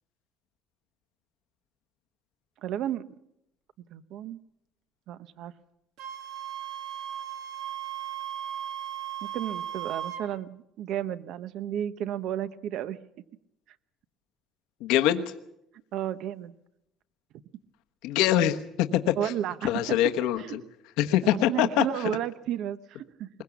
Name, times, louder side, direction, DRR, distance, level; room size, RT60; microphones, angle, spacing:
voice 1, 2.6-3.0 3.9-4.4 5.1-5.5 9.2-13.0 15.9-16.5 19.1-20.0 20.5-20.6 21.3-23.3, right 11 dB, 65° right, 14 dB, 1.0 m, -32 dB
Wind instrument woodwind instrument, 6.0-10.3, right 10 dB, 80° right, 2.5 m, -36 dB
voice 2, 14.8-15.2 18.0-19.3 19.6-20.6 21.0-21.8, left 12 dB, 90° left, 7 dB, 1.3 m, -24 dB
21.5 x 21.0 x 7.2 m, 0.81 s
cardioid pair, 140°, 0 cm